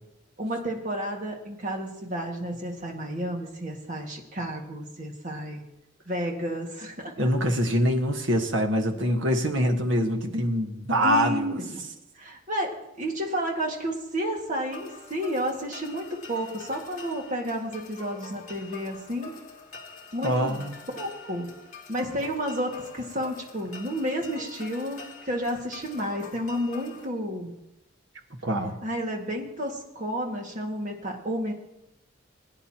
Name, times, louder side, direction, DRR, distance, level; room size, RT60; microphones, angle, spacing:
voice 1, 0.4-5.6 6.1-7.1 11.0-12.7 13.0-19.3 20.1-20.7 20.9-21.5 21.9-27.5 28.8-31.5, equal, 35° right, 1 dB, 1.9 m, -31 dB
voice 2, 7.2-11.5 20.2-20.8 28.4-28.8, equal, 60° right, 4 dB, 1.4 m, -24 dB
sound 1, 14.7-27.1, left 4 dB, 40° left, 2.0 m, -45 dB
21.5 x 9.7 x 2.9 m, 0.90 s
head